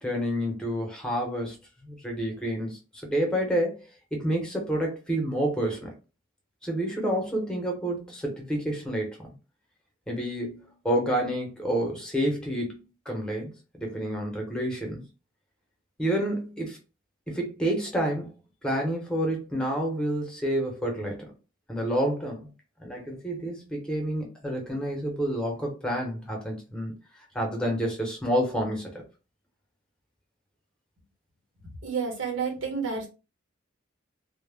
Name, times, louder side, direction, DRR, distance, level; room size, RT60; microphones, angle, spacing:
voice 1, 0.0-1.6 1.8-3.8 4.1-5.9 6.6-9.3 10.1-15.0 16.0-16.8 17.3-18.3 18.6-21.3 21.7-22.5 22.8-26.9 27.3-28.9, equal, 5° left, 0 dB, 0.7 m, -29 dB
voice 2, 31.6-33.1, right 5 dB, 75° right, 1 dB, 1.0 m, -30 dB
2.1 x 2.0 x 3.3 m, 0.31 s
head